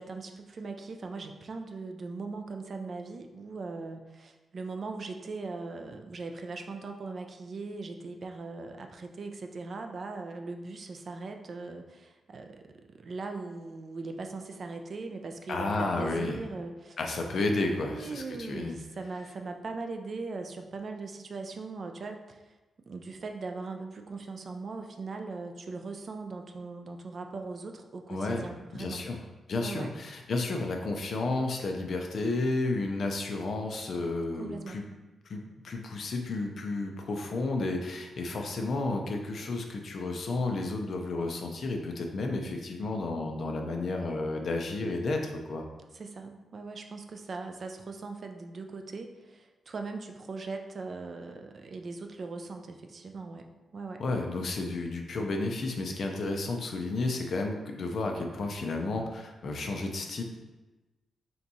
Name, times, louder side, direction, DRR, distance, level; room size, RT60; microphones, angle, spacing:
voice 1, 0.0-17.0 17.6-22.5 22.9-29.0 29.6-29.9 34.4-34.8 45.9-54.0, right 3 dB, 35° right, 5 dB, 0.3 m, -40 dB
voice 2, 15.5-16.4 17.0-18.7 28.1-28.5 28.7-29.2 29.5-34.8 35.3-45.7 54.0-60.2, left 2 dB, 45° left, 3 dB, 0.5 m, -32 dB
3.5 x 2.9 x 4.0 m, 1.1 s
wide cardioid pair, 175°, 0 cm